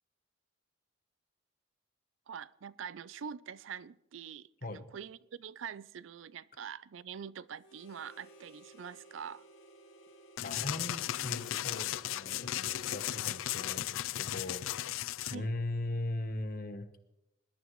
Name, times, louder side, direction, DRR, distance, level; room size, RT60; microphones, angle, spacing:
voice 1, 2.3-9.5 15.3-15.5, right 7 dB, 80° right, 0.4 m, -45 dB
Harmonica, 7.6-13.9, equal, 75° left, 1.4 m, -56 dB
sound 1, 10.4-15.4, left 13 dB, 90° left, 0.4 m, -36 dB
voice 2, 10.4-14.7 15.3-16.9, left 2 dB, 45° left, 1.0 m, -39 dB
20.5 x 12.0 x 3.1 m
head